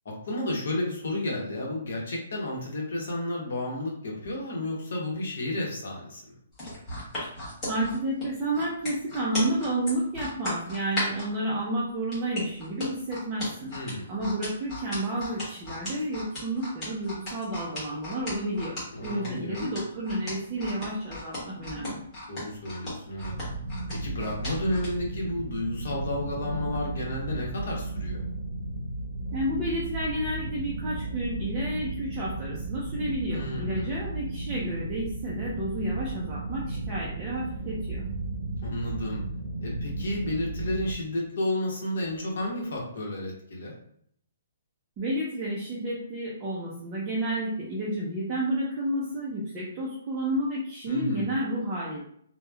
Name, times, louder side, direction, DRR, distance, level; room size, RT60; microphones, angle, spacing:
voice 1, 0.0-6.2 13.7-14.1 18.9-19.7 22.3-23.3 23.9-28.2 33.3-34.1 38.6-39.2 39.6-43.7 50.9-51.3, left 1 dB, 60° left, -2 dB, 0.9 m, -32 dB
sound 1, 6.5-11.3 12.1-24.9 25.4-25.5, left 1 dB, 15° left, 1.2 m, -36 dB
voice 2, 7.7-13.8 14.1-22.0 29.3-38.0 45.0-52.0, right 1 dB, 20° right, -5 dB, 0.4 m, -31 dB
sound 2, 23.2-40.9, right 2 dB, 80° right, 0.7 m, -34 dB
3.0 x 2.0 x 2.3 m, 0.67 s
hypercardioid pair, 175°, 0 cm